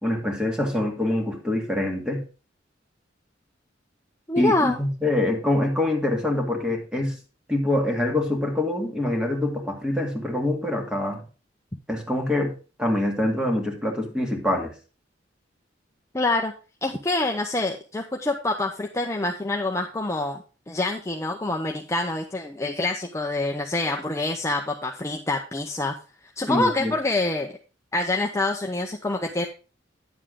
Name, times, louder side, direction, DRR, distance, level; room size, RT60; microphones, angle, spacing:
voice 1, 0.0-2.2 4.4-7.2 7.5-11.2 11.9-12.5 12.8-14.7 26.5-26.9, left 1 dB, 5° right, 2 dB, 2.0 m, -25 dB
voice 2, 4.3-4.8 16.1-16.5 16.8-20.4 20.7-25.9 26.4-27.5 27.9-29.5, left 2 dB, 15° left, 2 dB, 0.7 m, -26 dB
10.0 x 7.3 x 3.7 m, 0.34 s
head